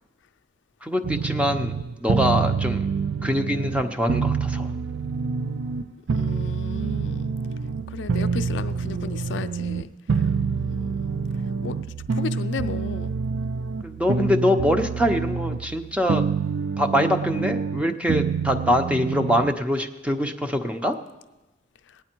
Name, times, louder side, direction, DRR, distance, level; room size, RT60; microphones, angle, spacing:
voice 1, 0.8-1.7 2.0-2.9 3.2-4.7 13.8-16.3 16.8-21.0, equal, 5° right, 6 dB, 0.7 m, -24 dB
sound 1, 1.0-19.5, right 5 dB, 65° right, 0.4 m, -27 dB
voice 2, 6.1-7.3 7.9-10.3 10.6-11.1 11.6-11.8 12.1-13.1 21.9-22.0, left 5 dB, 70° left, 10 dB, 0.4 m, -35 dB
18.5 x 9.4 x 4.5 m, 1.1 s
head